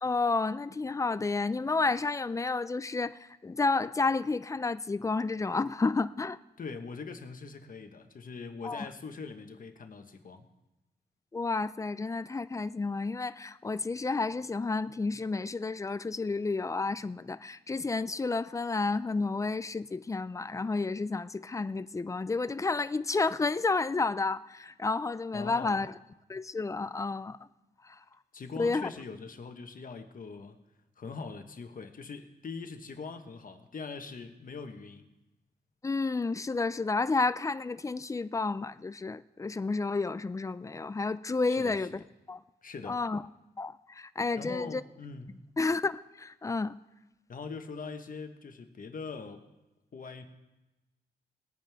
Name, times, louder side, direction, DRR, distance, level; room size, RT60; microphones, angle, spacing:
voice 1, 0.0-6.4 8.6-8.9 11.3-25.9 26.3-27.4 27.8-28.0 28.6-28.9 35.8-42.4 42.9-43.2 43.6-44.8 45.6-46.8, left 3 dB, 20° left, 0.3 m, -31 dB
voice 2, 6.6-10.5 25.3-25.8 28.3-30.6 31.0-35.1 41.5-41.9 42.6-43.0 44.4-45.4 47.3-49.5 49.9-50.2, left 4 dB, 50° left, 1.1 m, -42 dB
20.0 x 9.1 x 3.5 m
wide cardioid pair, 135°, 18 cm